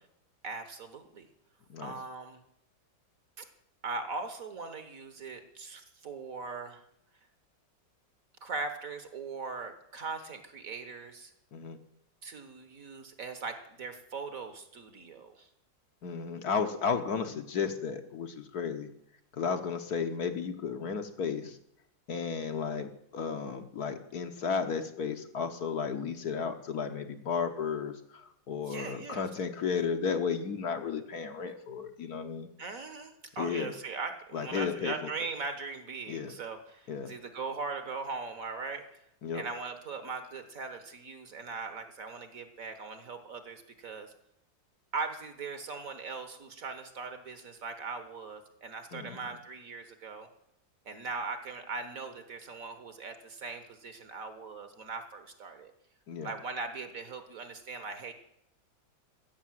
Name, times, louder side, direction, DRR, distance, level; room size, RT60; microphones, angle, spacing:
voice 1, 0.4-1.3 1.8-2.4 3.4-3.5 3.8-6.8 8.4-11.3 12.2-15.5 28.6-29.2 32.6-39.0 39.3-44.1 44.9-50.3 50.8-55.7 56.2-58.1, right 4 dB, 50° right, 9 dB, 1.6 m, -40 dB
voice 2, 16.0-18.9 19.3-21.6 22.1-32.5 33.4-33.7 34.3-35.1 36.1-36.3 36.9-37.1 39.2-39.5 48.9-49.2 56.1-56.3, left 6 dB, 60° left, 7 dB, 1.4 m, -33 dB
14.5 x 6.8 x 9.2 m, 0.75 s
omnidirectional pair, 2.0 m